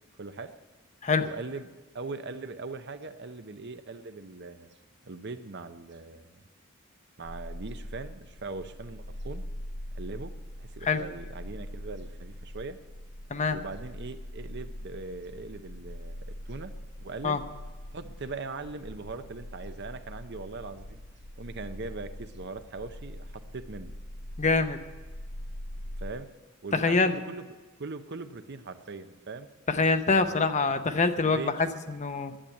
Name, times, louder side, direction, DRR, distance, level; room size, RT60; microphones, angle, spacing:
voice 1, 0.2-0.5 1.2-1.7 1.9-4.7 5.0-6.4 7.2-9.4 9.9-10.3 10.6-12.8 13.5-17.4 17.9-21.0 21.4-23.9 26.0-26.3 26.6-27.4 27.8-29.5 30.1-30.4 31.2-31.5 32.3-32.4, right 3 dB, 50° right, 10 dB, 0.7 m, -40 dB
sound 1, 7.2-26.1, equal, 60° left, 0.9 m, -42 dB
voice 2, 24.4-24.8 26.7-27.2 29.7-32.3, left 4 dB, 35° left, 9 dB, 0.7 m, -25 dB
11.5 x 8.7 x 9.0 m, 1.2 s
head